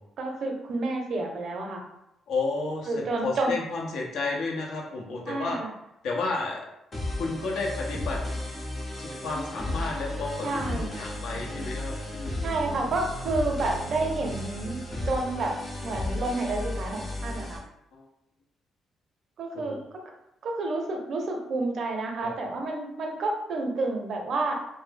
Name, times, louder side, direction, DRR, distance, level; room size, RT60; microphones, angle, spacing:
voice 1, 0.2-1.8 2.9-3.5 5.3-5.7 10.4-11.0 12.4-14.8 15.1-15.6 15.8-17.6 19.4-20.0 20.4-24.5, right 2 dB, 60° right, 2 dB, 0.5 m, -30 dB
voice 2, 2.3-5.6 6.0-6.6 7.2-8.2 9.0-12.5 17.9-18.0 19.5-19.8 22.2-22.3, left 3 dB, 75° left, -2 dB, 0.7 m, -32 dB
sound 1, 6.9-17.6, left 1 dB, 35° left, 0.7 m, -34 dB
2.2 x 2.0 x 3.3 m, 0.86 s
cardioid pair, 90°, 0 cm